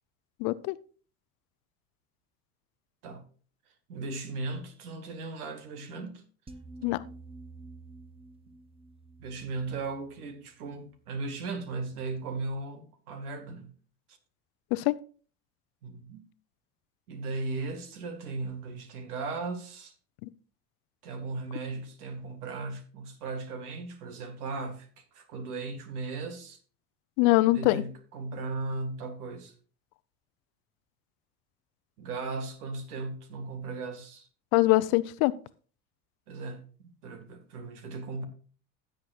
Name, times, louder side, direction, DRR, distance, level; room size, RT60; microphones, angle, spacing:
voice 1, 0.4-0.8 6.8-7.0 14.7-15.0 27.2-27.8 34.5-35.3, left 19 dB, 50° left, 0.7 m, -23 dB
voice 2, 3.9-6.2 9.2-13.7 15.8-16.3 17.1-19.9 21.0-26.6 27.5-29.5 32.0-34.3 36.3-38.2, right 3 dB, 75° right, 1.9 m, -37 dB
sound 1, 6.5-11.7, right 3 dB, 10° right, 0.9 m, -50 dB
16.0 x 7.5 x 2.4 m
figure-of-eight pair, 70°, 46 cm